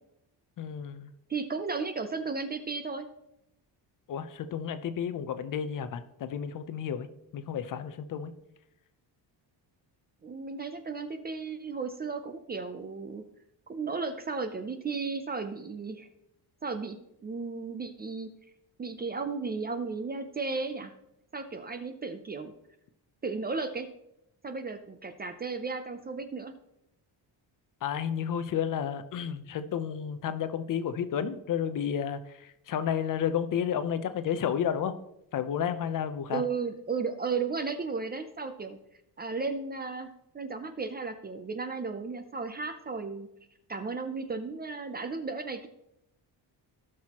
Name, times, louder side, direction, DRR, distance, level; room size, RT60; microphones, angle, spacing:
voice 1, 0.6-1.1 4.1-7.1 7.3-8.3 27.8-35.0 35.3-36.4, left 8 dB, 50° left, 11 dB, 0.6 m, -31 dB
voice 2, 1.3-3.1 10.2-13.2 13.7-16.1 16.6-17.0 17.2-18.3 18.8-20.9 21.3-22.5 23.2-23.9 24.4-26.5 36.3-38.8 39.2-43.3 43.7-45.7, right 4 dB, 25° right, 8 dB, 0.4 m, -34 dB
17.0 x 6.1 x 2.9 m, 0.82 s
cardioid pair, 180°, 41 cm